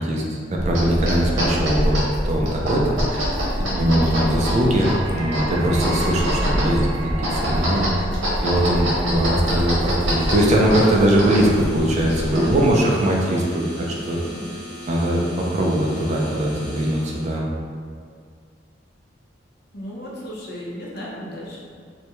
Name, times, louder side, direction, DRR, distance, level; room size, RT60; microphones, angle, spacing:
voice 1, 0.0-3.4 3.8-8.1 8.4-14.2 14.9-17.5, right 1 dB, 40° right, -2 dB, 0.3 m, -21 dB
sound 1, 0.6-12.7, equal, 90° right, 0.8 m, -25 dB
sound 2, 2.5-10.9, right 2 dB, 65° right, 0.9 m, -37 dB
voice 2, 3.6-4.0 12.3-12.9 13.3-14.5 19.7-21.6, equal, 60° left, -5 dB, 0.6 m, -36 dB
sound 3, 9.9-17.4, left 1 dB, 5° left, 0.8 m, -39 dB
2.3 x 2.1 x 2.8 m, 2.1 s
head